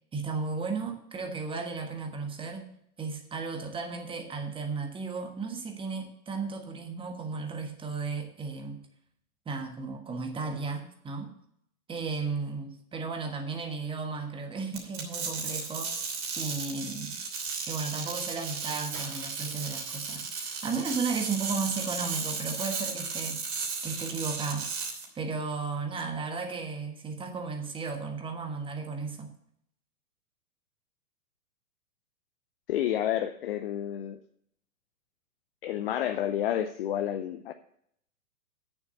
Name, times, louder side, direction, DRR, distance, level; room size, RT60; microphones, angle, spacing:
voice 1, 0.1-2.7 3.0-8.8 9.4-11.3 11.9-17.2 17.7-23.4 23.8-24.7 25.1-29.3, right 4 dB, 10° right, 4 dB, 1.4 m, -34 dB
sound 1, 14.7-25.0, right 5 dB, 30° right, 3.1 m, -35 dB
Shatter, 18.9-19.8, right 5 dB, 50° right, 3.1 m, -46 dB
voice 2, 32.7-34.2 35.6-37.5, left 11 dB, 40° left, 9 dB, 0.6 m, -30 dB
8.9 x 7.2 x 6.9 m, 0.70 s
hypercardioid pair, 120°, 46 cm